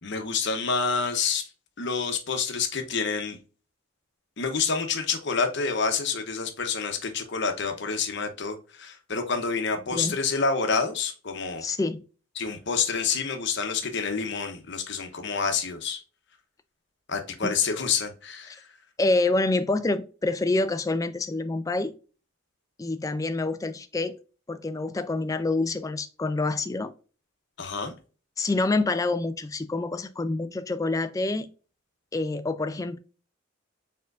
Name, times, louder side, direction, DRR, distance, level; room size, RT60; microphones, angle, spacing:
voice 1, 0.0-1.4 1.8-3.4 4.4-11.6 12.4-16.0 17.1-18.6 27.6-27.9, left 5 dB, 60° left, 0.9 m, -28 dB
voice 2, 11.6-12.0 17.4-17.5 18.5-18.6 19.0-21.9 22.8-24.2 24.5-26.9 28.4-31.5 32.1-33.0, left 2 dB, 15° left, 0.3 m, -27 dB
4.4 x 3.7 x 2.5 m
head